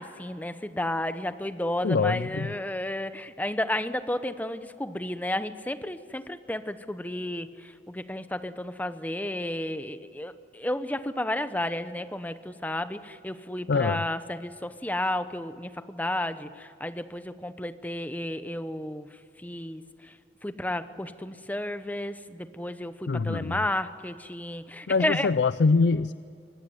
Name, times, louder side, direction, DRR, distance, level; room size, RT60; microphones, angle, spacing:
voice 1, 0.0-19.1 19.4-20.1 20.4-25.3, left 1 dB, 10° left, 11 dB, 0.9 m, -32 dB
voice 2, 1.8-2.5 13.7-14.0 23.1-23.6 24.9-26.1, left 4 dB, 70° left, 15 dB, 0.5 m, -24 dB
25.0 x 18.5 x 8.0 m, 2.4 s
head